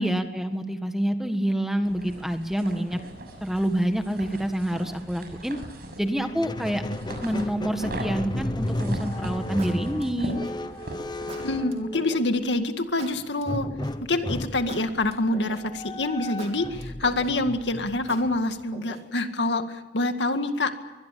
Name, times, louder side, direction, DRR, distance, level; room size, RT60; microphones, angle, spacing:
voice 1, 0.0-3.0 3.4-5.6 6.0-6.8 7.2-10.4, equal, ahead, 7 dB, 1.7 m, -27 dB
sound 1, 1.8-11.7, right 1 dB, 60° right, 6.6 m, -40 dB
Squeak, 6.2-12.5 13.5-18.6, left 1 dB, 25° left, 1.0 m, -34 dB
sound 2, 8.7-9.0 9.6-10.7 11.3-12.2 13.0-14.1 14.7-15.8 16.4-17.5 18.1-19.2, right 2 dB, 40° right, 3.5 m, -43 dB
voice 2, 11.4-13.7 14.0-20.8, left 2 dB, 85° left, 7 dB, 2.1 m, -26 dB
24.0 x 20.5 x 8.6 m, 1.1 s
head